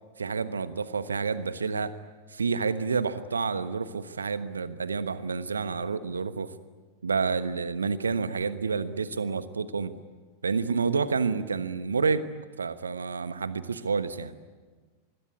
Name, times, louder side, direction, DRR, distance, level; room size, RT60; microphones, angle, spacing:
voice 1, 0.2-2.0 2.3-6.5 7.0-9.9 10.4-12.3 12.6-14.3, right 5 dB, 75° right, 13 dB, 1.2 m, -29 dB
26.0 x 21.0 x 9.7 m, 1.4 s
figure-of-eight pair, 90°, 0 cm